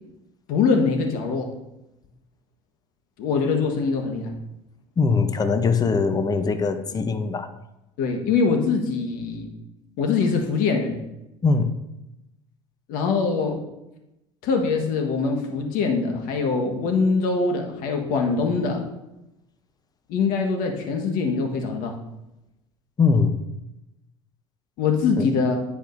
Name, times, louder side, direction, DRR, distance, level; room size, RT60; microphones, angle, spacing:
voice 1, 0.5-1.5 3.2-4.3 8.0-9.5 10.0-11.0 12.9-13.5 14.4-18.8 20.1-21.9 24.8-25.6, left 4 dB, 65° left, 3 dB, 1.4 m, -23 dB
voice 2, 5.0-7.5 11.4-11.8 23.0-23.4 25.2-25.3, left 4 dB, 25° left, 9 dB, 0.7 m, -21 dB
10.0 x 5.1 x 2.6 m, 0.92 s
hypercardioid pair, 75°, 16 cm